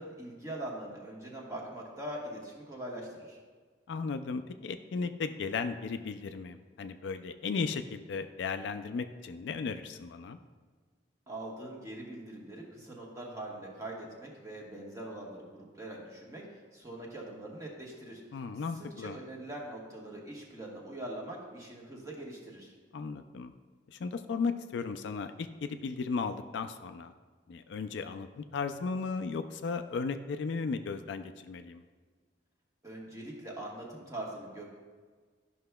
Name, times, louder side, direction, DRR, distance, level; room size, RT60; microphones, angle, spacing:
voice 1, 0.0-3.4 11.3-16.4 16.7-18.2 18.7-22.7 32.8-34.6, right 1 dB, 20° right, -3 dB, 1.2 m, -42 dB
voice 2, 3.9-10.4 18.3-19.2 22.9-23.5 23.9-27.1 27.5-31.8, left 4 dB, 70° left, 9 dB, 0.4 m, -35 dB
11.5 x 5.8 x 2.2 m, 1.5 s
head